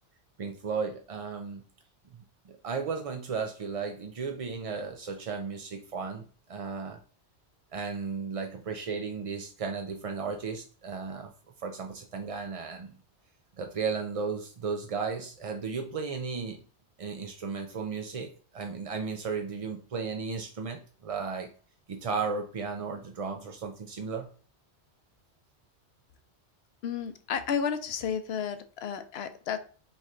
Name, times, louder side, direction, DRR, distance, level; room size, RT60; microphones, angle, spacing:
voice 1, 0.4-1.6 2.1-7.0 7.7-11.3 11.6-12.9 13.6-16.6 17.0-21.5 21.9-24.3, right 5 dB, 50° right, 4 dB, 0.4 m, -35 dB
voice 2, 26.8-29.6, left 7 dB, 70° left, 10 dB, 0.8 m, -32 dB
4.3 x 3.2 x 3.6 m, 0.40 s
omnidirectional pair, 1.2 m